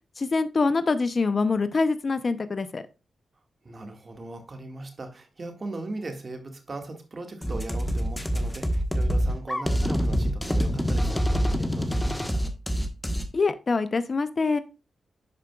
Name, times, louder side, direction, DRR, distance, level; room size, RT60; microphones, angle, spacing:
voice 1, 0.2-2.8 13.3-14.6, left 4 dB, 50° left, 13 dB, 0.7 m, -24 dB
voice 2, 3.6-12.5, right 2 dB, 45° right, 5 dB, 1.8 m, -39 dB
sound 1, 7.4-13.3, equal, 10° left, 1.3 m, -25 dB
11.5 x 5.0 x 2.4 m, 0.29 s
cardioid pair, 60°, 0 cm